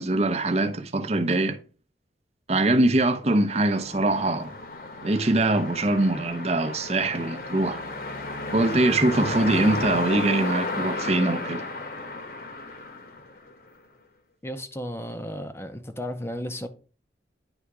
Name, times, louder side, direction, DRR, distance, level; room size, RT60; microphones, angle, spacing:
voice 1, 0.0-1.6 2.5-4.5 5.0-7.8 8.5-11.6, right 2 dB, 35° right, 0.7 m, -23 dB
sound 1, 3.5-13.7, left 2 dB, 55° left, 1.1 m, -33 dB
voice 2, 14.4-16.7, equal, 15° left, 0.6 m, -34 dB
9.8 x 3.4 x 4.8 m
head